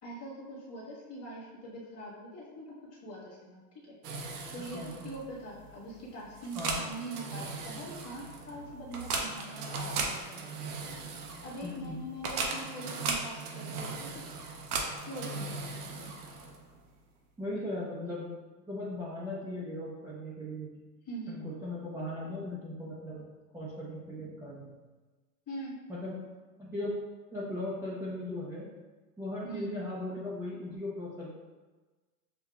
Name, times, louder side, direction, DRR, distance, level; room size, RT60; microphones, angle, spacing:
voice 1, 0.0-4.8 5.0-10.5 11.4-14.3 15.0-16.1 21.0-21.4 25.5-25.8 29.4-29.7, right 1 dB, 30° left, -5 dB, 1.5 m, -43 dB
sound 1, 4.0-16.8, right 4 dB, 70° right, 0.9 m, -38 dB
voice 2, 4.6-5.1 6.5-6.8 11.6-12.0 17.4-18.3 18.7-20.7 21.3-23.2 23.5-24.8 25.9-26.1 26.6-27.0 27.3-28.7 29.2-31.3, left 1 dB, 5° right, -9 dB, 0.5 m, -38 dB
6.7 x 2.6 x 2.3 m, 1.3 s
hypercardioid pair, 110°, 47 cm